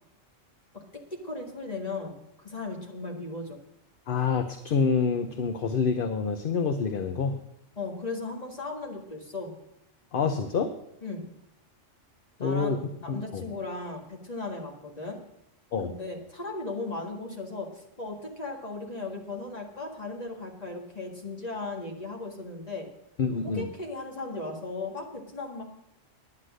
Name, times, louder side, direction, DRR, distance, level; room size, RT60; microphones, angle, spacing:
voice 1, 1.1-3.6 7.8-9.5 11.0-11.2 12.4-15.2 15.8-22.9 23.3-25.6, left 3 dB, 30° left, 1 dB, 2.0 m, -37 dB
voice 2, 4.1-7.4 10.1-10.7 12.4-12.8 13.1-13.4 15.7-15.9 23.2-23.7, left 5 dB, 50° left, 8 dB, 0.8 m, -27 dB
9.8 x 9.7 x 6.4 m, 0.84 s
omnidirectional pair, 1.3 m